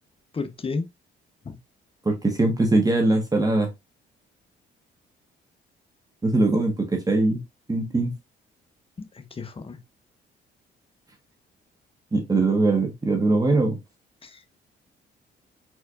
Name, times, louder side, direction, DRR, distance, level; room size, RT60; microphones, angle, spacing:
voice 1, 0.3-0.8 1.5-1.6 9.0-9.1 9.4-9.8 14.2-14.3, left 4 dB, 30° left, 1.0 m, -31 dB
voice 2, 2.0-3.7 6.2-7.4 7.7-8.2 12.1-13.8, right 2 dB, 20° right, 1.4 m, -21 dB
4.6 x 4.2 x 2.5 m
cardioid pair, 90°, 20 cm